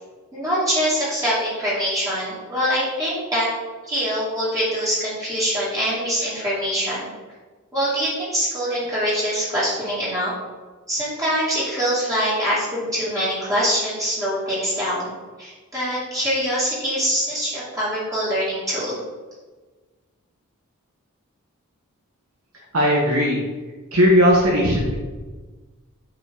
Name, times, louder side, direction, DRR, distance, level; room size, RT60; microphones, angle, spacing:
voice 1, 0.3-3.5 3.9-7.1 7.7-10.3 10.9-15.1 15.4-19.0, equal, 15° right, -10 dB, 2.4 m, -24 dB
voice 2, 22.7-23.4 23.9-24.9, equal, 90° right, -3 dB, 1.4 m, -17 dB
9.1 x 5.2 x 3.9 m, 1.3 s
head